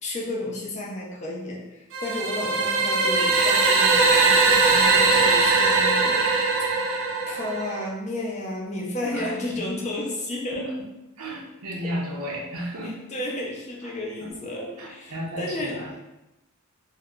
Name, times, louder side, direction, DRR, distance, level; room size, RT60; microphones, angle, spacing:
voice 1, 0.0-6.2 7.3-11.0 11.8-11.9 12.8-16.0, left 1 dB, 35° left, -2 dB, 0.6 m, -32 dB
sound 1, 1.9-7.9, right 3 dB, 60° right, 0.5 m, -20 dB
voice 2, 9.1-9.8 10.5-10.7 11.2-13.0 13.8-14.3 14.8-15.9, equal, 90° right, -3 dB, 0.8 m, -34 dB
2.8 x 2.1 x 3.6 m, 0.95 s
head